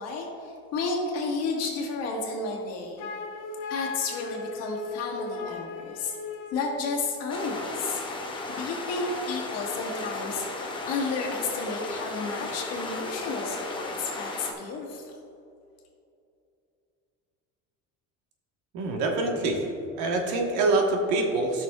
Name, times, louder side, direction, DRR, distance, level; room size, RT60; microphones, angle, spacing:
voice 1, 0.0-3.1 3.7-6.2 6.5-8.0 8.5-15.2, left 4 dB, 55° left, -1 dB, 1.7 m, -32 dB
Wind instrument woodwind instrument, 3.0-6.7, left 4 dB, 75° left, 1.0 m, -37 dB
sound 1, 7.3-14.5, left 2 dB, 15° left, 0.8 m, -35 dB
voice 2, 18.7-19.7 20.0-21.6, right 2 dB, 80° right, 1 dB, 1.5 m, -25 dB
13.5 x 6.1 x 2.4 m, 2.6 s
cardioid pair, 160°, 29 cm